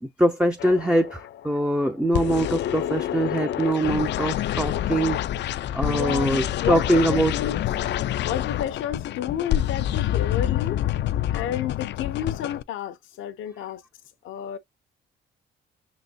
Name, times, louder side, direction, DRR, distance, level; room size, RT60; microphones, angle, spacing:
voice 1, 0.0-5.2 5.7-7.3, right 1 dB, 5° right, 0.5 m, -23 dB
sound 1, 0.6-1.7 2.1-12.6, left 12 dB, 65° left, 0.4 m, -27 dB
voice 2, 5.8-7.6 8.2-10.8 11.3-13.8 14.2-14.6, left 9 dB, 80° left, 0.8 m, -31 dB
5.9 x 4.0 x 2.2 m
cardioid pair, 90°, 20 cm